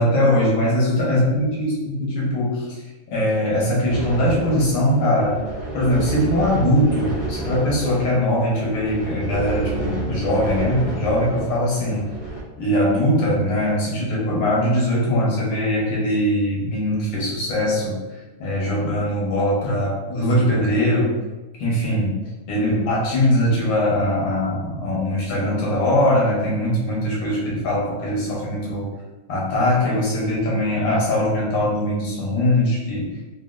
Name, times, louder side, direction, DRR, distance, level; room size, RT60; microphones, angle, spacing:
voice 1, 0.0-2.7 3.1-5.4 5.7-12.0 12.6-18.0 18.4-21.1 21.6-22.1 22.5-28.9 29.3-33.1, left 1 dB, 85° left, -5 dB, 1.8 m, -21 dB
sound 1, 3.9-12.4, right 3 dB, 65° left, 0.7 m, -30 dB
4.2 x 2.3 x 2.4 m, 1.2 s
omnidirectional pair, 2.0 m